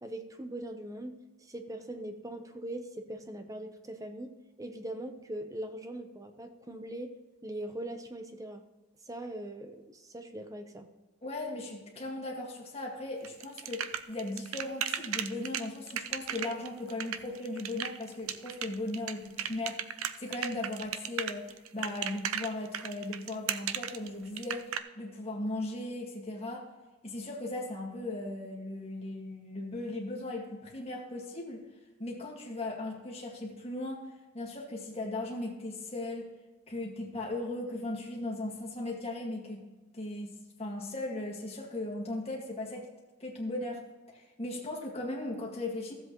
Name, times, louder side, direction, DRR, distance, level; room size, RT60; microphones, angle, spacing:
voice 1, 0.0-7.1 7.4-8.6 9.0-10.9, right 1 dB, 15° right, 6 dB, 0.8 m, -41 dB
voice 2, 11.2-26.7 27.0-31.6 32.0-34.1 34.3-36.3 36.7-39.6 39.9-40.3 40.6-42.9 43.2-43.8 44.1-45.9, left 2 dB, 30° left, -1 dB, 1.9 m, -37 dB
sound 1, 13.2-24.8, right 9 dB, 85° right, 0.5 m, -35 dB
14.5 x 7.8 x 3.1 m, 1.2 s
head